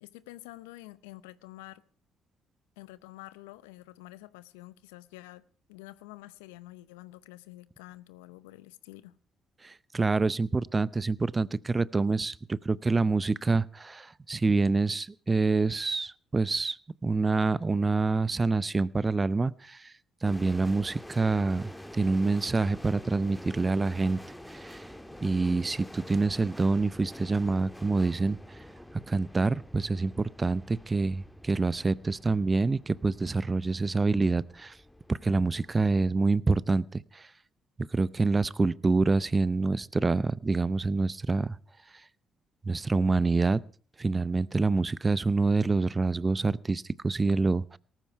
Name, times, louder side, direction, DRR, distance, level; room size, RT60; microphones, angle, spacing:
voice 1, 0.0-1.8 2.8-9.2, left 17 dB, 85° left, 0.7 m, -48 dB
voice 2, 9.6-16.8 17.0-19.9 20.2-24.2 24.5-24.8 25.2-28.6 29.1-34.8 35.1-37.3 37.9-41.6 42.6-43.6 44.0-47.8, right 3 dB, 30° right, 0.6 m, -27 dB
sound 1, 20.2-36.1, left 1 dB, 5° left, 1.7 m, -47 dB
18.0 x 14.0 x 4.6 m
hypercardioid pair, 50°, 0 cm